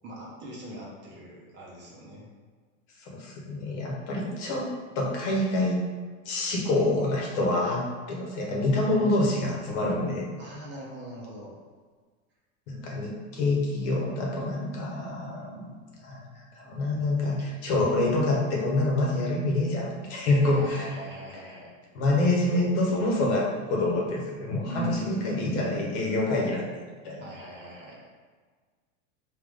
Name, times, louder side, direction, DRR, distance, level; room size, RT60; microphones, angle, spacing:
voice 1, 0.0-2.3 10.4-11.5 17.2-17.5 20.5-21.7 24.6-26.0 27.2-28.0, right 1 dB, 25° right, -4 dB, 0.8 m, -40 dB
voice 2, 3.0-4.7 4.9-5.8 6.2-10.3 12.7-15.7 16.0-20.9 21.9-27.2, left 2 dB, 55° left, -2 dB, 1.2 m, -27 dB
3.7 x 3.2 x 3.5 m, 1.5 s
supercardioid pair, 140°, 41 cm